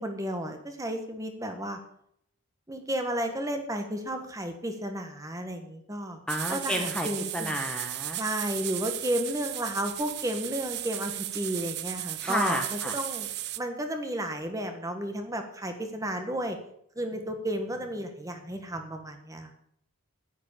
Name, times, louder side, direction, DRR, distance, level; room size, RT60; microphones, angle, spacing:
voice 1, 0.0-1.8 2.7-6.2 6.5-7.6 8.2-16.6 16.9-19.6, right 1 dB, 15° right, 5 dB, 1.5 m, -33 dB
voice 2, 6.3-7.1 7.3-8.2 12.2-12.9, equal, 5° left, 2 dB, 1.2 m, -31 dB
sound 1, 6.3-13.6, right 15 dB, 50° right, 0.6 m, -35 dB
10.5 x 9.9 x 6.7 m, 0.70 s
head